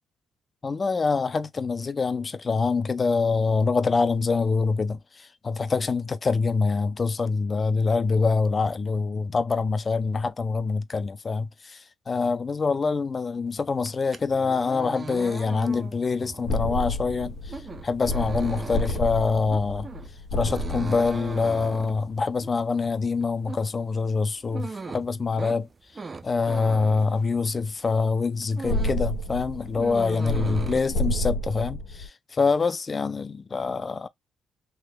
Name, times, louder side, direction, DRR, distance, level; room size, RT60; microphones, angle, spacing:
voice 1, 0.6-17.6 17.8-19.9 20.3-25.7 26.2-34.1, left 4 dB, 35° left, 0.4 m, -25 dB
sound 1, 13.7-27.8 28.1-29.1 29.4-30.8, right 4 dB, 30° right, 0.5 m, -39 dB
sound 2, 16.5-22.1 28.6-32.1, left 1 dB, 80° left, 1.3 m, -30 dB
3.5 x 3.0 x 2.2 m
cardioid pair, 90°, 0 cm